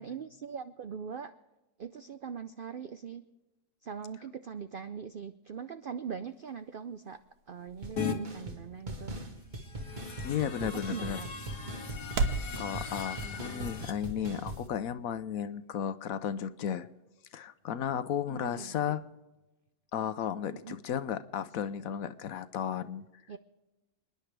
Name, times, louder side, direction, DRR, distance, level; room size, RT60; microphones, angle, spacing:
voice 1, 0.0-1.3 1.8-3.2 3.8-7.2 7.5-9.1 10.7-11.3 18.3-18.9 20.6-20.7 23.3-23.4, right 7 dB, 65° right, 10 dB, 0.5 m, -41 dB
sound 1, 6.3-12.5, right 4 dB, 85° right, 1.5 m, -39 dB
sound 2, 7.8-8.0 8.2-8.6 8.9-14.7, right 1 dB, 30° right, 1.6 m, -41 dB
sound 3, 8.0-8.2 9.6-13.9, left 5 dB, 85° left, 1.9 m, -39 dB
voice 2, 10.2-11.2 12.6-16.9 17.3-19.0 19.9-23.1, left 9 dB, 70° left, 13 dB, 1.1 m, -34 dB
28.5 x 10.5 x 3.3 m, 1.0 s
omnidirectional pair, 1.6 m